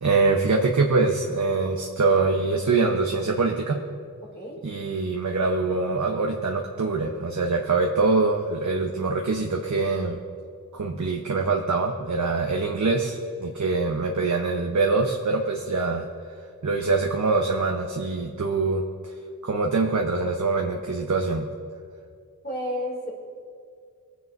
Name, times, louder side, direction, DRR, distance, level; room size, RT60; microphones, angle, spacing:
voice 1, 0.0-3.8 4.6-10.2 10.7-16.1 16.6-19.1 19.4-21.5, right 3 dB, 55° right, 1 dB, 1.0 m, -24 dB
voice 2, 4.3-4.6 22.4-23.1, left 1 dB, 30° left, -3 dB, 2.7 m, -31 dB
24.0 x 9.4 x 2.6 m, 2.2 s
wide cardioid pair, 60°, 35 cm